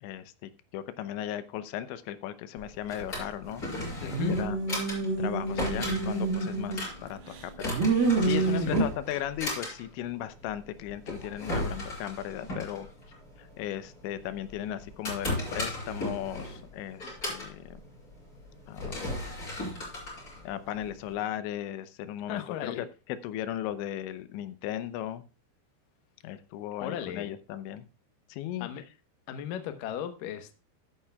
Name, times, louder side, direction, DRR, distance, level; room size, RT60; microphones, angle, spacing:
voice 1, 0.0-4.6 5.2-12.9 13.4-17.6 18.7-19.0 20.4-25.2 26.2-27.9 28.3-28.7, left 11 dB, 90° left, 12 dB, 3.2 m, -37 dB
Drawer open or close, 2.6-21.1, left 1 dB, 20° left, 5.0 m, -37 dB
voice 2, 4.0-4.4 8.3-8.8 22.3-22.8 26.8-27.3 28.6-28.8 29.3-30.6, left 9 dB, 70° left, 8 dB, 2.3 m, -36 dB
sound 1, 4.1-6.9 7.3-8.8, right 3 dB, 60° right, 3.1 m, -27 dB
13.5 x 10.0 x 2.3 m, 0.32 s
omnidirectional pair, 5.1 m